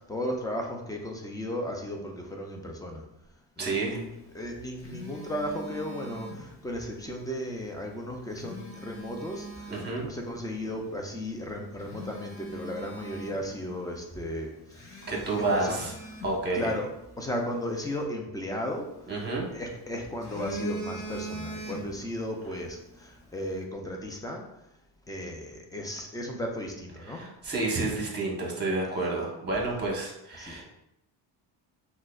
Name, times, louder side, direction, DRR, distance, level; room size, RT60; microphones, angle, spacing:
voice 1, 0.1-3.0 3.6-9.7 10.0-14.5 15.4-15.9 16.5-16.9 17.2-18.8 19.5-24.4 25.1-27.2 30.4-30.6, equal, 10° left, 1 dB, 0.3 m, -35 dB
voice 2, 3.6-4.0 9.7-10.1 15.1-15.9 16.2-16.7 19.1-19.5 27.1-30.6, right 2 dB, 20° right, -1 dB, 0.9 m, -30 dB
Telephone, 4.3-6.9 8.1-10.0 10.6-10.8 11.3-11.4 11.8-13.9 14.1-14.2 14.7-17.1 18.7-19.6 20.0-22.2 22.5-22.7, right 1 dB, 25° left, 0.8 m, -40 dB
5.8 x 2.1 x 2.3 m, 0.84 s
cardioid pair, 130°, 48 cm